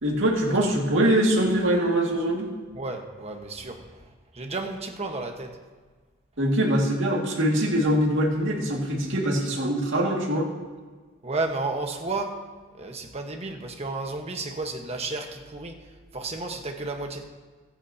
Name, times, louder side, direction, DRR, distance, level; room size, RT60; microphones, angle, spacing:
voice 1, 0.0-2.5 6.4-10.5, right 1 dB, 65° right, -1 dB, 2.2 m, -23 dB
voice 2, 2.7-3.8 4.3-5.5 11.2-12.3 12.8-15.7 16.1-17.2, right 3 dB, 30° right, 3 dB, 1.3 m, -32 dB
23.5 x 9.1 x 2.9 m, 1.4 s
head